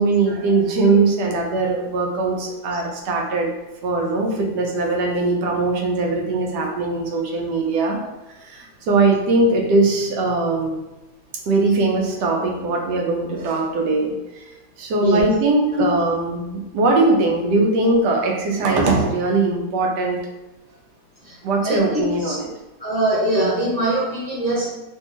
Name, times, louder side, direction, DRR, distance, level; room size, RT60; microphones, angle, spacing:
voice 1, 0.0-3.5 3.8-8.0 8.4-10.8 11.5-14.4 14.8-20.2 21.4-22.5, right 3 dB, 85° right, 1 dB, 1.3 m, -20 dB
voice 2, 21.6-22.4 22.8-24.7, right 1 dB, 35° left, -8 dB, 0.7 m, -22 dB
3.3 x 2.6 x 2.9 m, 1.0 s
omnidirectional pair, 1.8 m